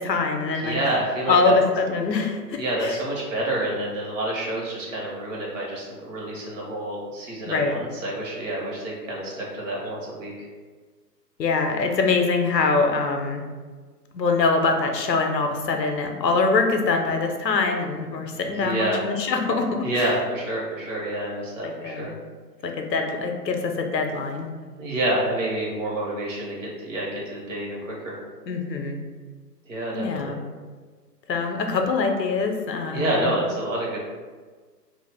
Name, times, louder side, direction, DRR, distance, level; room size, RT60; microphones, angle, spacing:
voice 1, 0.0-0.8 1.3-3.0 7.5-7.7 11.4-13.4 14.1-20.1 21.6-22.1 22.6-24.5 28.5-29.0 29.9-30.4 31.3-33.3, left 4 dB, 85° left, 4 dB, 0.6 m, -24 dB
voice 2, 0.5-1.5 2.6-10.3 18.6-19.0 19.8-22.1 24.8-28.1 29.7-30.3 32.9-34.0, right 1 dB, 50° right, -4 dB, 0.9 m, -28 dB
2.3 x 2.1 x 3.2 m, 1.4 s
figure-of-eight pair, 130°, 49 cm